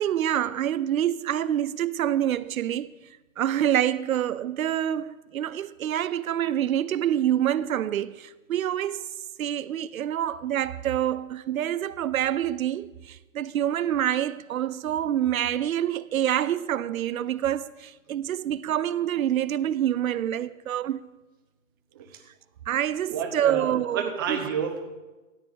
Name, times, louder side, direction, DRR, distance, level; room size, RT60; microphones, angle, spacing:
voice 1, 0.0-3.0 3.4-9.1 9.4-21.0 22.7-24.5, right 11 dB, 85° right, 0.7 m, -26 dB
voice 2, 23.1-24.8, right 7 dB, 15° right, 0.8 m, -30 dB
13.5 x 9.3 x 6.4 m
hypercardioid pair, 175°, 41 cm